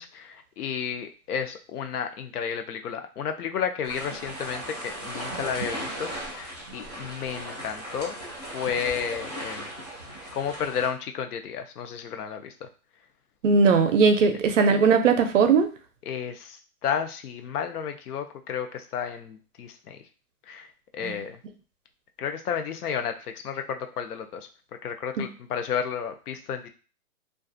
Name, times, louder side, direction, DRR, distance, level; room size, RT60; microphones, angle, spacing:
voice 1, 0.0-9.7 10.3-12.7 16.1-20.0 20.5-21.4 22.2-24.5 24.8-26.7, left 7 dB, 80° left, 7 dB, 0.6 m, -32 dB
sound 1, 3.8-10.9, right 1 dB, 30° left, 0.4 m, -37 dB
voice 2, 13.4-15.7 21.0-21.2 25.2-25.3, right 5 dB, 60° right, 7 dB, 0.5 m, -19 dB
2.3 x 2.3 x 2.5 m, 0.36 s
hypercardioid pair, 165°, 45 cm